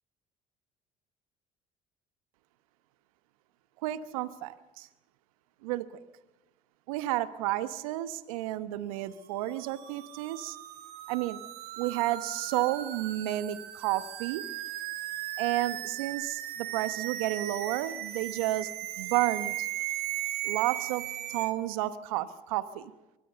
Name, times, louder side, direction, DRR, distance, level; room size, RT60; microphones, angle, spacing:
voice 1, 3.8-4.9 5.6-5.8 6.9-10.6 11.1-11.4 11.8-14.4 15.4-18.7 19.0-19.7 20.4-21.0 21.3-22.9, right 15 dB, 85° right, 14 dB, 1.0 m, -31 dB
sound 1, 9.2-21.5, right 13 dB, 65° right, 2.1 m, -37 dB
23.0 x 16.5 x 6.9 m, 1.0 s
hypercardioid pair, 65°, 17 cm